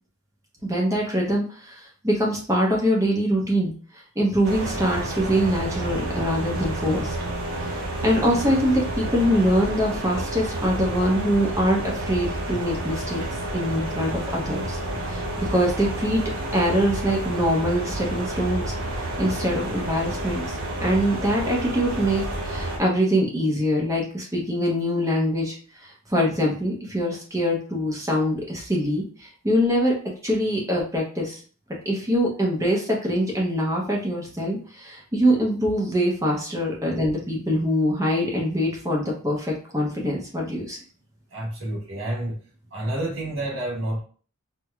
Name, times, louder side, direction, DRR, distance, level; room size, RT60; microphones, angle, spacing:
voice 1, 0.6-3.7 4.2-7.1 7.7-7.8 8.0-13.2 13.5-14.8 15.1-16.2 16.5-18.7 19.2-20.4 20.8-25.5 25.8-29.9 30.2-31.4 31.8-40.8, equal, 15° right, -2 dB, 0.7 m, -23 dB
sound 1, 4.4-22.8, right 1 dB, 85° right, 1.0 m, -30 dB
voice 2, 41.3-42.4 42.7-44.0, right 1 dB, 65° right, -3 dB, 1.3 m, -29 dB
4.5 x 2.2 x 2.4 m, 0.41 s
head